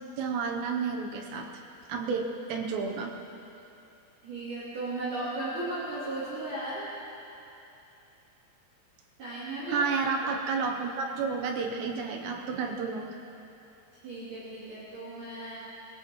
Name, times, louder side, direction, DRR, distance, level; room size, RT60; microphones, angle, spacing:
voice 1, 0.2-1.6 1.9-3.1 9.7-13.2, right 5 dB, 75° right, 2 dB, 2.9 m, -31 dB
voice 2, 4.2-6.9 9.2-9.8 14.0-15.6, right 2 dB, 50° right, -9 dB, 4.1 m, -35 dB
21.0 x 19.0 x 3.1 m, 2.8 s
omnidirectional pair, 5.4 m